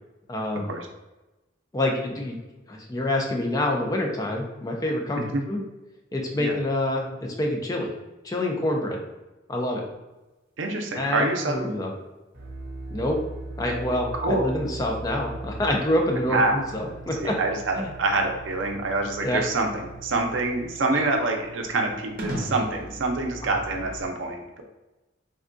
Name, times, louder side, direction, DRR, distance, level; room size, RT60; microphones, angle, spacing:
voice 1, 0.3-0.7 1.7-2.4 2.7-5.2 5.5-5.6 6.1-7.1 7.4-7.9 8.2-9.0 9.5-9.8 11.0-12.0 12.9-13.2 13.6-17.3 17.8-17.9 19.2-19.4, left 1 dB, 20° left, 0 dB, 0.4 m, -26 dB
voice 2, 10.6-11.7 14.1-14.4 16.3-16.6 17.2-24.6, right 2 dB, 80° right, 3 dB, 0.5 m, -26 dB
sound 1, 12.3-24.0, right 1 dB, 50° right, 0.8 m, -39 dB
3.5 x 2.2 x 2.5 m, 1.1 s
head